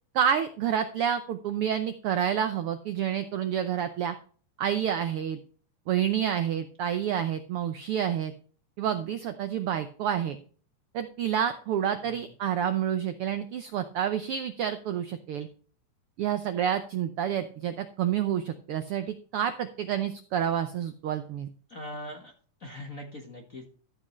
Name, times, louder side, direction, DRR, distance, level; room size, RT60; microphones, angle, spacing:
voice 1, 0.1-4.1 4.6-5.4 5.9-8.3 8.8-10.4 10.9-15.5 16.2-21.5, right 9 dB, 90° right, 9 dB, 1.2 m, -29 dB
voice 2, 21.7-22.3 22.6-23.7, left 1 dB, 45° left, 2 dB, 1.1 m, -41 dB
13.5 x 7.4 x 3.1 m, 0.43 s
omnidirectional pair, 3.5 m